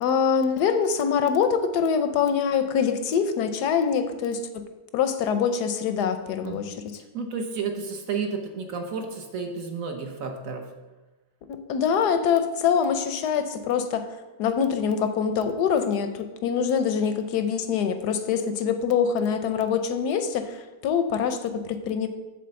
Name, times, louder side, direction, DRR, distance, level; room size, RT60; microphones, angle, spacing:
voice 1, 0.0-4.6 4.9-6.7 11.5-14.1 14.4-22.1, left 7 dB, 70° left, 8 dB, 1.1 m, -24 dB
voice 2, 7.1-10.7, right 5 dB, 55° right, 4 dB, 1.1 m, -31 dB
7.6 x 4.0 x 6.9 m, 1.1 s
omnidirectional pair, 2.0 m